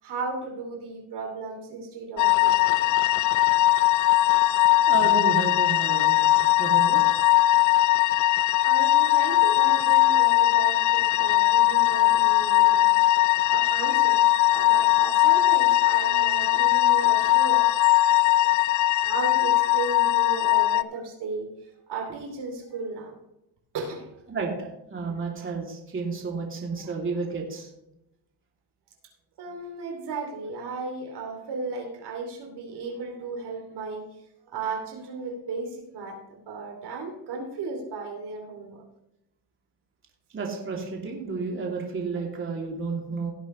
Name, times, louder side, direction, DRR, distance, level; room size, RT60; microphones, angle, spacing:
voice 1, 0.0-2.9 6.3-6.6 7.8-7.9 8.3-18.2 19.0-23.2 23.7-24.2 25.0-25.1 26.8-26.9 29.4-34.1 34.5-38.8, right 3 dB, 50° right, 2 dB, 2.9 m, -35 dB
sound 1, 2.2-20.8, left 15 dB, 40° left, 0.5 m, -20 dB
voice 2, 4.9-6.2 6.6-7.0 18.4-18.5 24.3-24.5 24.9-27.7 40.3-43.3, right 4 dB, 25° right, -1 dB, 2.8 m, -31 dB
17.0 x 8.2 x 3.2 m, 0.84 s
supercardioid pair, 100°, 50 cm